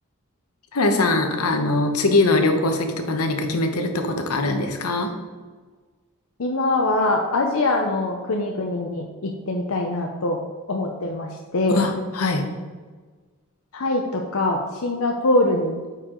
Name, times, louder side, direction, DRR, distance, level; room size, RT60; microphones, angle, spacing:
voice 1, 0.7-5.1 11.7-12.4, left 2 dB, 85° left, 5 dB, 1.0 m, -22 dB
voice 2, 6.4-10.4 10.7-11.8 13.7-15.8, left 2 dB, 70° left, 1 dB, 0.7 m, -23 dB
9.2 x 4.6 x 3.8 m, 1.4 s
head